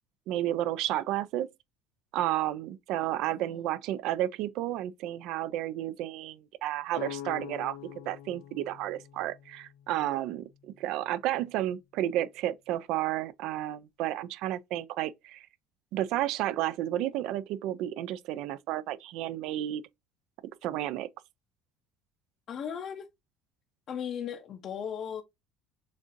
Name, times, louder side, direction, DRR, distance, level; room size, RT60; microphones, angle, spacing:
voice 1, 0.3-1.5 2.1-7.8 8.1-15.5 15.9-19.8 20.6-21.1, right 13 dB, 60° right, 0.4 m, -32 dB
sound 1, 6.9-10.8, left 11 dB, 85° left, 0.7 m, -44 dB
voice 2, 22.5-23.1 23.9-25.2, left 8 dB, 35° left, 0.6 m, -36 dB
6.4 x 2.5 x 2.5 m
cardioid pair, 155°, 0 cm